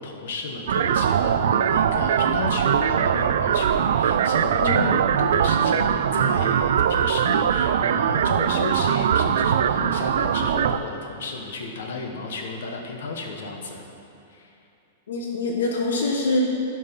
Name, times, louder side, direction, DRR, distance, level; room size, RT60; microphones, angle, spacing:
voice 1, 0.0-13.8 14.3-14.6, left 3 dB, 70° left, 2 dB, 1.3 m, -33 dB
sound 1, 0.7-10.8, right 8 dB, 70° right, 0.3 m, -21 dB
voice 2, 4.6-5.0 15.1-16.4, left 3 dB, 90° left, -1 dB, 1.2 m, -25 dB
11.0 x 5.3 x 5.3 m, 2.7 s
supercardioid pair, 170°, 0 cm